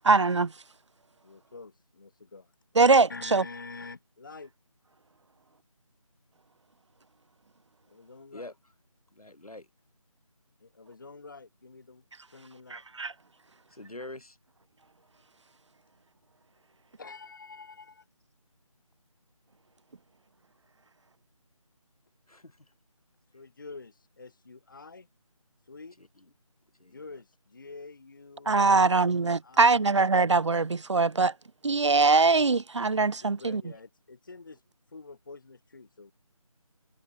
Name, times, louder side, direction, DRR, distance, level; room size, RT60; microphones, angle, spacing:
voice 1, 0.0-0.5 2.8-3.4 12.7-13.1 28.5-31.3 31.6-33.6, right 4 dB, 55° right, 0.5 m, -22 dB
voice 2, 1.2-2.5 3.1-4.5 7.9-8.5 10.6-12.8 17.0-18.0 23.3-25.1 25.7-26.0 26.8-29.9 33.2-34.6 34.9-36.1, left 4 dB, 35° left, 0.9 m, -47 dB
voice 3, 9.1-9.7 13.7-14.4 22.3-22.7 26.0-26.3 26.8-27.0, left 2 dB, 90° left, 4.7 m, -45 dB
figure-of-eight pair, 170°, 18 cm